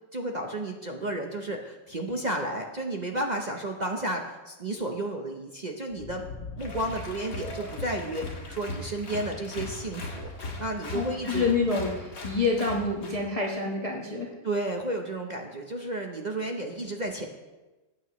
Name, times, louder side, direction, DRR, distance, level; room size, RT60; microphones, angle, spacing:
voice 1, 0.1-6.2 6.6-11.5 14.4-17.3, right 1 dB, 45° right, 2 dB, 0.5 m, -32 dB
sound 1, 5.9-10.5, left 4 dB, 70° left, 1.8 m, -45 dB
Applause, 6.6-13.3, left 2 dB, 50° left, 2.0 m, -39 dB
voice 2, 10.9-14.3, left 3 dB, 25° left, -2 dB, 1.1 m, -27 dB
18.0 x 9.0 x 3.1 m, 1.1 s
omnidirectional pair, 1.9 m